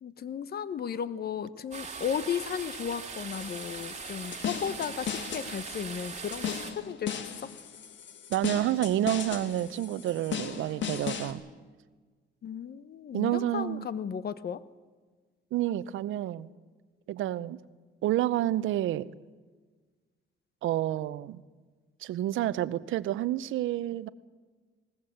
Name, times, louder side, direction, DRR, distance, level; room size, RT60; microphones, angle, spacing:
voice 1, 0.0-7.5 12.4-14.6, left 8 dB, 50° left, 1.0 m, -35 dB
sound 1, 1.7-6.7, right 5 dB, 35° right, 2.2 m, -41 dB
sound 2, 3.3-11.3, left 8 dB, 70° left, 2.0 m, -37 dB
voice 2, 8.3-11.4 13.1-13.9 15.5-16.5 17.1-17.6 18.0-19.1 20.6-21.4 22.0-24.1, right 13 dB, 80° right, 0.7 m, -29 dB
20.5 x 18.5 x 7.9 m
cardioid pair, 90°, 20 cm